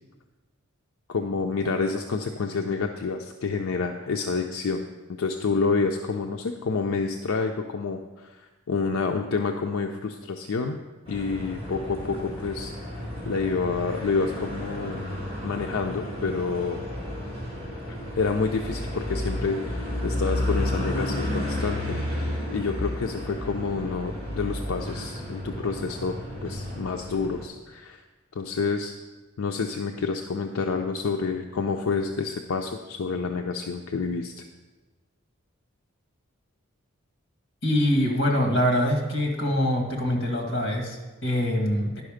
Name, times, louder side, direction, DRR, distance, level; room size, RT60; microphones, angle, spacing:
voice 1, 1.1-4.8 5.2-10.8 11.1-15.0 15.4-16.8 18.1-21.8 22.2-28.0 28.3-28.9 29.4-34.5, left 4 dB, 85° left, 4 dB, 0.5 m, -28 dB
sound 1, 11.1-27.4, left 1 dB, 25° right, 2.5 m, -32 dB
voice 2, 37.6-42.0, equal, 60° left, 1 dB, 1.8 m, -24 dB
10.5 x 5.7 x 5.0 m, 1.2 s
head